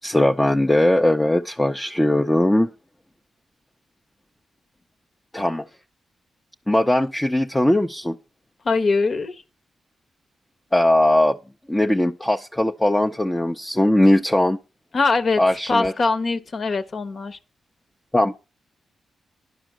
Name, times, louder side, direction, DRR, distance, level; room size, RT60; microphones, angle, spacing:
voice 1, 0.0-2.7 5.3-5.6 6.7-8.2 10.7-11.4 11.7-14.6 15.4-15.9 18.1-18.3, left 1 dB, 15° left, 0.6 m, -19 dB
voice 2, 8.6-9.4 14.9-15.4 15.7-17.4, left 3 dB, 55° left, 1.1 m, -22 dB
11.0 x 4.9 x 7.6 m
cardioid pair, 65°, 0 cm